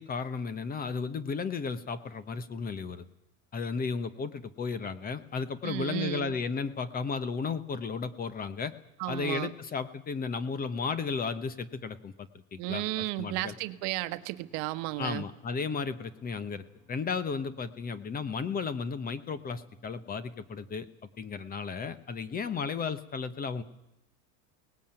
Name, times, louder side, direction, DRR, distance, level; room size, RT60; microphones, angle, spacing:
voice 1, 0.0-3.0 3.5-8.7 9.1-13.5 15.0-20.9 21.2-23.6, left 5 dB, 20° left, 14 dB, 1.1 m, -34 dB
voice 2, 5.6-6.3 9.0-9.5 12.6-15.2, right 18 dB, 60° right, 12 dB, 1.2 m, -33 dB
sound 1, 13.2-21.5, left 4 dB, 5° left, 5.4 m, -63 dB
22.0 x 19.0 x 9.0 m, 0.86 s
supercardioid pair, 145°, 39 cm